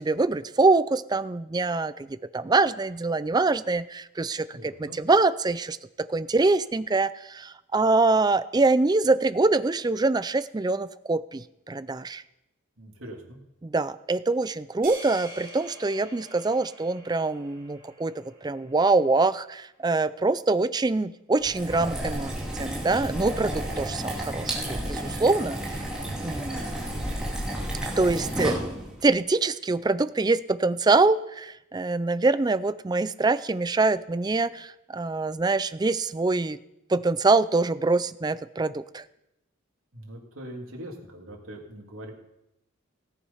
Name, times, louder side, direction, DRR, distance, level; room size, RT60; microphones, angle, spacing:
voice 1, 0.0-5.8 6.1-12.2 13.6-25.6 26.2-26.7 28.0-28.6 29.0-36.6 36.9-39.0, right 3 dB, 20° right, 16 dB, 0.4 m, -24 dB
voice 2, 4.5-5.0 12.8-13.4 28.1-28.2 39.9-42.1, right 1 dB, 75° right, -1 dB, 3.1 m, -42 dB
sound 1, 14.8-19.2, right 1 dB, 45° right, 3.7 m, -46 dB
sound 2, 21.4-29.0, right 1 dB, 5° right, 2.8 m, -32 dB
17.5 x 8.4 x 5.6 m, 0.87 s
head